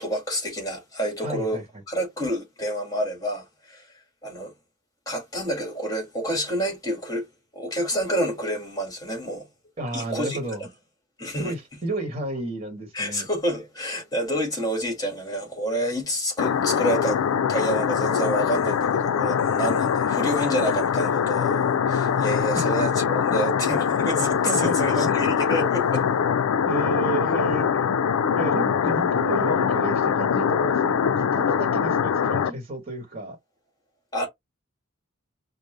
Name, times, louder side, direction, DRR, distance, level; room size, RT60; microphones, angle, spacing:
voice 1, 0.0-1.6 1.9-4.5 5.0-7.3 7.5-9.4 9.9-10.4 11.2-11.5 12.9-17.2 17.5-26.0 34.1-34.3, equal, 15° left, 1.8 m, -28 dB
voice 2, 1.2-1.6 9.8-10.6 11.4-13.3 22.5-22.7 24.4-25.3 26.4-28.0 28.3-33.4, right 2 dB, 25° right, 1.2 m, -32 dB
sound 1, 16.4-32.5, left 7 dB, 85° left, 0.4 m, -23 dB
5.2 x 2.0 x 3.2 m
head